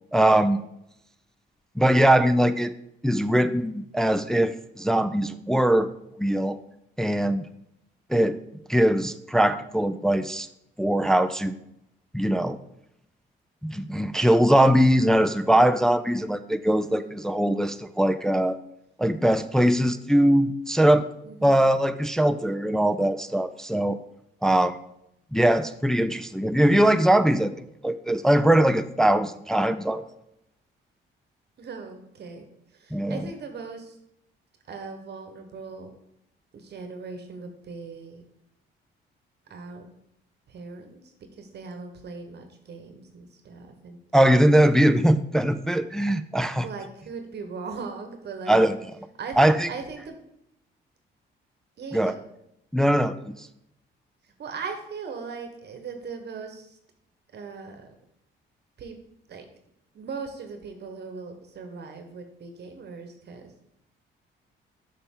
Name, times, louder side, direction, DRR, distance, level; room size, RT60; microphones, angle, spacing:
voice 1, 0.1-0.6 1.8-2.7 3.0-5.9 6.2-6.6 7.0-7.5 8.1-8.4 8.7-10.5 10.8-11.6 12.1-12.6 13.6-18.6 19.0-21.1 21.4-24.0 24.4-24.8 25.3-27.5 27.8-30.0 32.9-33.2 44.1-46.7 48.5-48.7 49.4-49.7 51.9-52.1 52.7-53.3, right 1 dB, 5° left, 10 dB, 0.3 m, -21 dB
voice 2, 16.7-17.1 19.6-20.0 21.2-21.6 27.2-27.5 31.6-32.4 32.7-34.0 34.7-35.9 36.5-38.2 39.5-39.9 40.5-41.0 41.4-44.0 46.6-48.6 49.2-50.2 51.8-52.3 54.4-56.8 57.3-57.9 58.8-59.0 59.3-59.4 59.9-63.5, right 5 dB, 55° right, 6 dB, 1.0 m, -39 dB
7.0 x 5.6 x 3.6 m, 0.80 s
cardioid pair, 90°, 20 cm